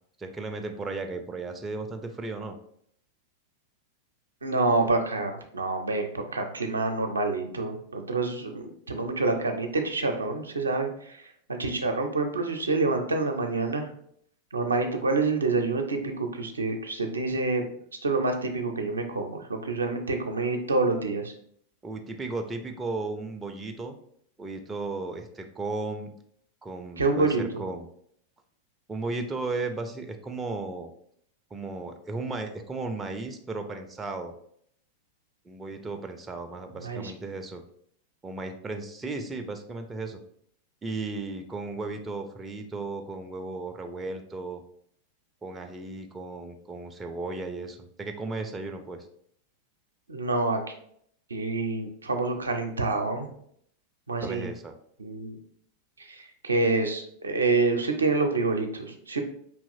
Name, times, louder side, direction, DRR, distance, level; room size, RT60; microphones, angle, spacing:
voice 1, 0.2-2.6 21.8-24.0 24.4-26.1 26.6-27.9 28.9-30.9 31.5-34.3 35.5-37.6 38.2-40.2 40.8-44.6 45.4-49.1 54.2-54.7, right 3 dB, 15° right, 5 dB, 0.4 m, -35 dB
voice 2, 4.4-11.2 11.5-13.9 14.5-17.7 18.0-21.3 27.0-27.6 36.8-37.1 50.1-50.6 51.3-53.3 54.1-54.5 55.0-55.3 56.0-59.2, right 3 dB, 75° right, 4 dB, 0.5 m, -27 dB
4.6 x 2.9 x 2.6 m, 0.67 s
figure-of-eight pair, 90°, 0 cm